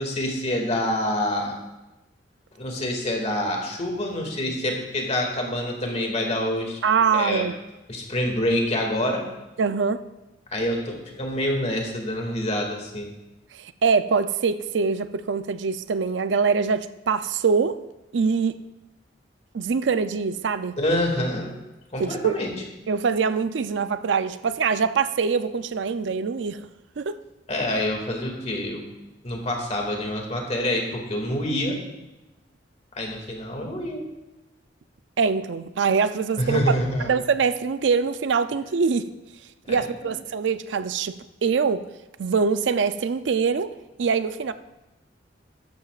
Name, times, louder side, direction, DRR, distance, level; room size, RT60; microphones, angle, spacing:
voice 1, 0.0-1.5 2.6-7.5 7.9-9.2 10.5-13.1 20.8-21.5 21.9-22.5 27.5-28.8 29.2-31.8 32.9-34.0 36.4-37.1 39.6-39.8, left 1 dB, 35° left, 1 dB, 2.1 m, -26 dB
voice 2, 6.8-7.5 9.6-10.0 13.5-17.8 18.1-18.6 19.5-20.8 22.0-22.4 22.9-26.6 27.0-27.1 35.2-36.6 37.1-39.1 39.7-41.8 42.2-43.7 44.0-44.5, right 5 dB, 75° right, 12 dB, 0.5 m, -23 dB
14.5 x 11.5 x 2.4 m, 1.0 s
head